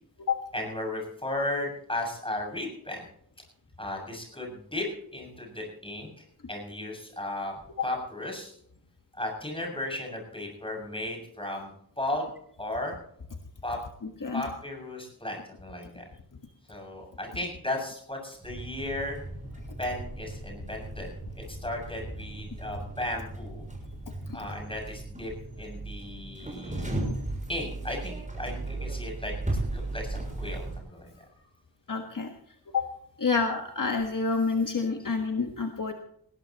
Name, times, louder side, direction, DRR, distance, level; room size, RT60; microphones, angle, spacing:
voice 1, 0.5-3.0 3.8-6.1 6.5-7.5 7.8-8.5 9.2-11.7 12.0-12.3 12.6-12.9 13.6-13.8 14.3-16.0 16.7-19.2 19.8-21.1 21.4-23.6 24.3-25.3 25.6-26.9 27.5-31.4, left 1 dB, 15° left, 1 dB, 7.1 m, -35 dB
sound 1, 18.4-30.8, right 2 dB, 20° right, 6.8 m, -36 dB
voice 2, 31.9-32.3 32.7-32.8 33.2-35.9, left 4 dB, 55° left, 4 dB, 1.6 m, -28 dB
20.0 x 17.0 x 3.0 m, 0.67 s
wide cardioid pair, 90°, 39 cm